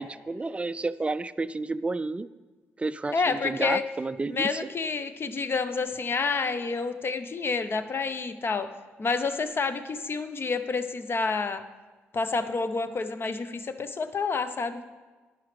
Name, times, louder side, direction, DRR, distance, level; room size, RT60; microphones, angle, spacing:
voice 1, 0.0-2.3 2.8-4.6, right 3 dB, 20° right, 16 dB, 0.3 m, -31 dB
voice 2, 3.1-3.8 4.3-8.7 9.0-11.6 12.1-14.8, left 4 dB, 40° left, 11 dB, 0.7 m, -29 dB
11.5 x 9.1 x 3.2 m, 1.3 s
figure-of-eight pair, 40°, 6 cm